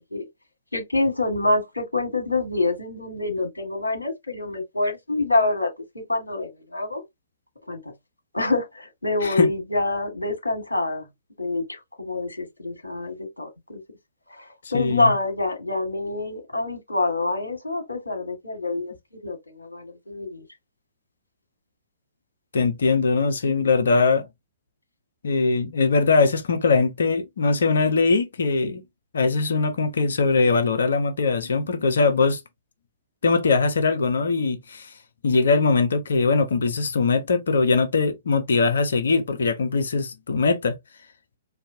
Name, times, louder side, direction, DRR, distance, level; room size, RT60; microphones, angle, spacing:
voice 1, 0.7-7.0 7.7-7.9 8.3-11.1 11.4-13.8 14.3-18.9 19.2-20.4, left 2 dB, 85° left, 1.4 m, -26 dB
voice 2, 14.7-15.1 22.5-24.3 25.2-28.8 29.1-32.4 33.2-34.9 35.2-40.8, left 4 dB, 65° left, 0.8 m, -21 dB
4.1 x 2.7 x 2.6 m
figure-of-eight pair, 120°, 0 cm